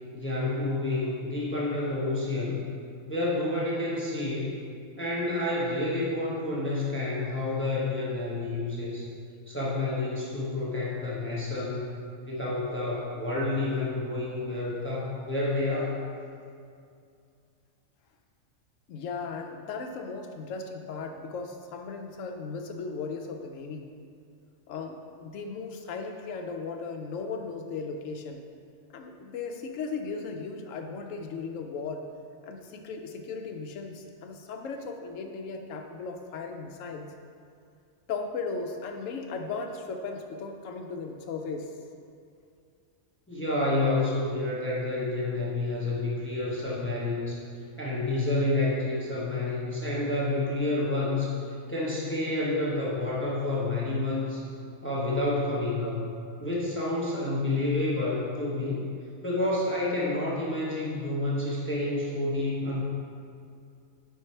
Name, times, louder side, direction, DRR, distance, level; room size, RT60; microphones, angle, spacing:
voice 1, 0.1-2.6 3.1-4.5 5.0-9.1 9.5-11.9 12.2-16.0 43.3-47.4 47.8-51.3 51.7-54.4 54.8-56.0 56.4-58.8 59.2-62.8, left 2 dB, 10° left, -6 dB, 0.9 m, -29 dB
voice 2, 18.9-23.9 24.7-28.4 28.9-32.1 32.4-37.1 38.1-41.7, left 4 dB, 70° left, 4 dB, 1.0 m, -36 dB
5.5 x 4.6 x 4.4 m, 2.3 s
omnidirectional pair, 1.4 m